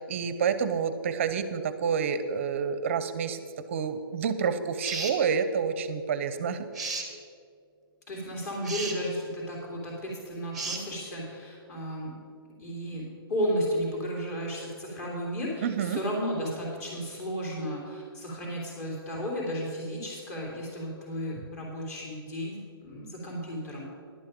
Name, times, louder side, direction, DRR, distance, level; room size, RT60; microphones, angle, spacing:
voice 1, 0.0-3.4 3.7-6.7 15.6-16.0, right 6 dB, 30° right, 12 dB, 0.6 m, -28 dB
sound 1, 4.8-5.2 6.7-7.1 8.6-9.0 10.5-10.8, right 4 dB, ahead, 0.8 m, -33 dB
voice 2, 8.1-12.2 12.6-23.9, equal, 40° left, -3 dB, 3.2 m, -33 dB
11.0 x 8.9 x 5.2 m, 2.3 s
hypercardioid pair, 165°, 13 cm